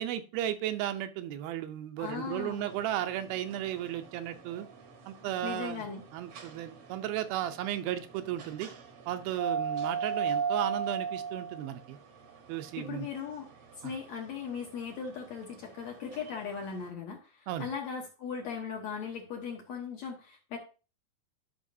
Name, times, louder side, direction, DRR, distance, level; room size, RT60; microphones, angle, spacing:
voice 1, 0.0-4.7 5.1-5.9 6.1-8.7 9.1-12.0 12.5-13.1 13.8-14.0 17.5-17.7, right 12 dB, 85° right, 9 dB, 2.6 m, -35 dB
voice 2, 2.0-2.6 5.4-6.0 12.8-13.5 13.8-20.6, left 6 dB, 65° left, 0 dB, 1.8 m, -38 dB
sound 1, 2.0-16.9, right 6 dB, 65° right, 1.4 m, -39 dB
12.5 x 5.6 x 2.7 m, 0.34 s
omnidirectional pair, 4.2 m